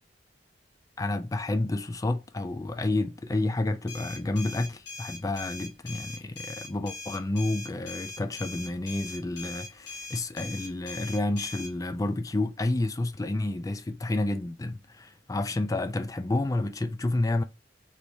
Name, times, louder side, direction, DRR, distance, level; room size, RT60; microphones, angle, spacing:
voice 1, 1.0-17.4, left 2 dB, 20° left, 0.4 m, -30 dB
sound 1, 3.9-11.7, left 2 dB, 65° left, 1.2 m, -41 dB
4.0 x 3.3 x 3.4 m
head